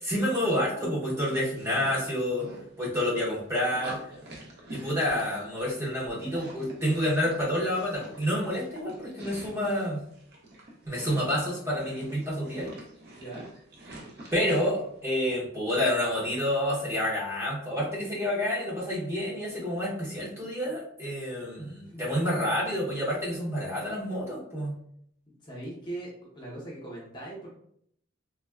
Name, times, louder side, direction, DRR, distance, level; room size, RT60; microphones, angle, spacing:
voice 1, 0.0-2.5 2.8-4.0 4.7-10.0 10.9-12.7 14.3-24.7, equal, 15° right, -5 dB, 0.7 m, -29 dB
sound 1, 1.2-15.4, right 1 dB, 50° right, 0.6 m, -47 dB
voice 2, 13.2-13.5 21.9-22.0 25.3-26.1 26.3-27.5, right 2 dB, 20° left, -4 dB, 0.6 m, -40 dB
3.4 x 2.2 x 2.2 m, 0.68 s
head